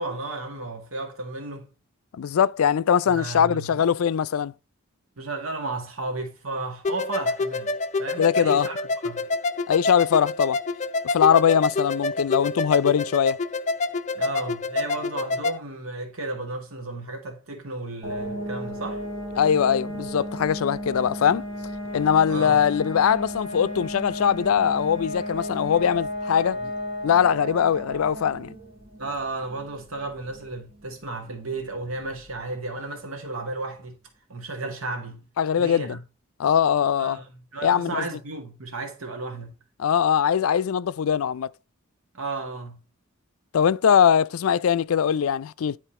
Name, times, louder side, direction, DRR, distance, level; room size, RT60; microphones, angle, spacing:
voice 1, 0.0-1.7 3.1-3.8 5.2-9.3 14.1-19.0 22.3-22.6 26.6-26.7 29.0-34.0 34.3-35.2 35.6-36.0 37.0-39.5 42.1-42.8, right 2 dB, 80° right, 1.8 m, -34 dB
voice 2, 2.1-4.5 8.2-8.7 9.7-10.6 11.0-13.4 19.4-21.4 21.9-26.6 27.0-28.5 35.4-36.0 36.4-37.2 37.6-38.1 39.8-41.5 43.5-45.8, left 8 dB, 90° left, 0.4 m, -21 dB
sound 1, 6.8-15.6, left 3 dB, 35° left, 0.5 m, -27 dB
sound 2, 18.0-32.6, equal, 30° right, 3.6 m, -34 dB
10.0 x 4.3 x 4.3 m
head